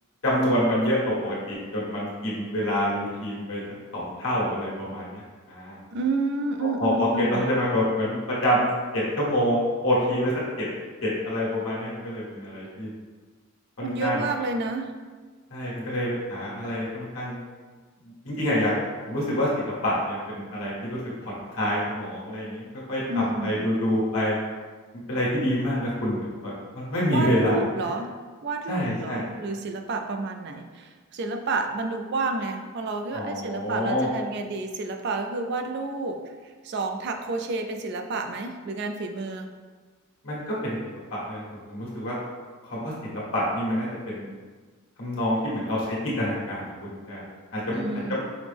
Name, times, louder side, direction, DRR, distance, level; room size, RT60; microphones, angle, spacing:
voice 1, 0.2-3.6 3.9-5.2 5.5-5.8 6.6-6.9 7.2-10.3 10.6-10.7 11.0-12.9 13.8-14.2 15.5-17.4 18.2-18.7 19.1-21.0 21.5-24.4 25.1-26.2 26.4-27.6 28.7-29.2 33.1-34.1 40.2-40.8 41.1-42.1 42.6-44.3 45.0-47.2 47.5-47.8 48.1-48.2, equal, 85° left, -6 dB, 1.3 m, -27 dB
voice 2, 5.9-7.4 13.8-15.0 23.1-23.7 27.1-28.1 28.4-39.5 47.7-48.2, right 3 dB, 55° right, 5 dB, 0.3 m, -30 dB
4.9 x 2.0 x 3.3 m, 1.4 s
head